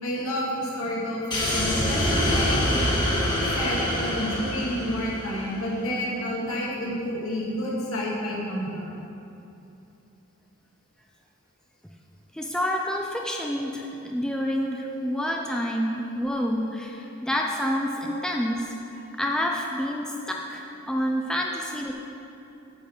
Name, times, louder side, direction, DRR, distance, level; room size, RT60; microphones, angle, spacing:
voice 1, 0.0-3.0 3.6-8.9 14.7-14.8 18.0-18.2 20.2-20.3, equal, 75° left, -5 dB, 2.2 m, -30 dB
sound 1, 1.3-5.7, left 1 dB, 20° left, 1.6 m, -25 dB
voice 2, 12.3-21.9, equal, 5° left, 0 dB, 0.4 m, -28 dB
9.2 x 4.5 x 7.4 m, 2.8 s
head